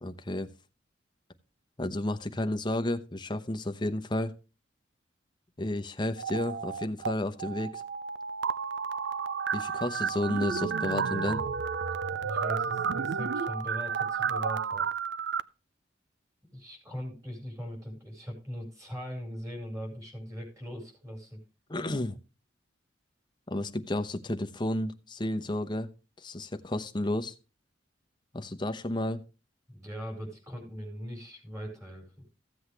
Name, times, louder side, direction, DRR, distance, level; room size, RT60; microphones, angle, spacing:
voice 1, 0.0-0.5 1.8-4.3 5.6-7.8 9.5-11.4 21.7-22.2 23.5-25.9 26.2-27.3 28.3-29.2, left 1 dB, 25° left, 7 dB, 0.9 m, -32 dB
sound 1, 6.2-7.1 7.4-15.4, right 6 dB, 65° right, 0.5 m, -31 dB
voice 2, 12.0-14.9 16.5-21.4 29.7-32.2, equal, 15° right, 2 dB, 4.9 m, -40 dB
15.0 x 7.9 x 3.3 m, 0.32 s
head